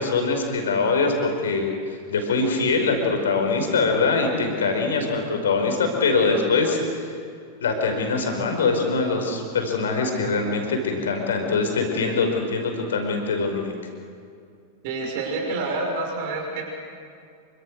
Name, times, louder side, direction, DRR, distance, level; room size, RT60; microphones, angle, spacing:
voice 1, 0.0-7.1 7.6-13.7, left 4 dB, 65° left, 3 dB, 5.3 m, -23 dB
voice 2, 14.8-16.7, right 3 dB, 50° right, 2 dB, 5.7 m, -28 dB
28.0 x 25.0 x 6.6 m, 2.4 s
figure-of-eight pair, 90°, 0 cm